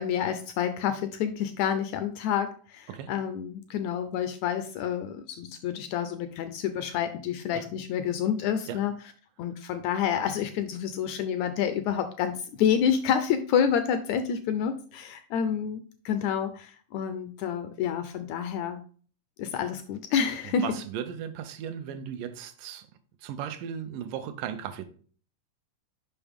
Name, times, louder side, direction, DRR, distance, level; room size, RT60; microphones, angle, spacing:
voice 1, 0.0-8.9 9.4-18.8 19.4-20.8, left 8 dB, 80° left, 1.6 m, -28 dB
voice 2, 20.4-22.9 23.2-24.8, right 9 dB, 85° right, 2.3 m, -36 dB
6.9 x 5.5 x 3.5 m
omnidirectional pair, 3.7 m